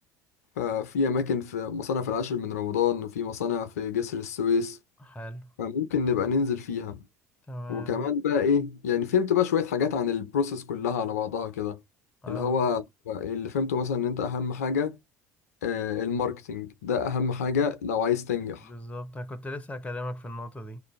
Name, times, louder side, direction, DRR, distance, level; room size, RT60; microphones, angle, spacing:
voice 1, 0.6-4.8 5.6-7.0 7.7-11.8 12.3-15.0 15.6-18.7, left 6 dB, 75° left, 0.5 m, -27 dB
voice 2, 5.1-5.5 7.5-8.0 12.2-12.6 18.6-20.8, left 1 dB, 15° left, 0.7 m, -37 dB
2.5 x 2.1 x 3.0 m
figure-of-eight pair, 65°, 8 cm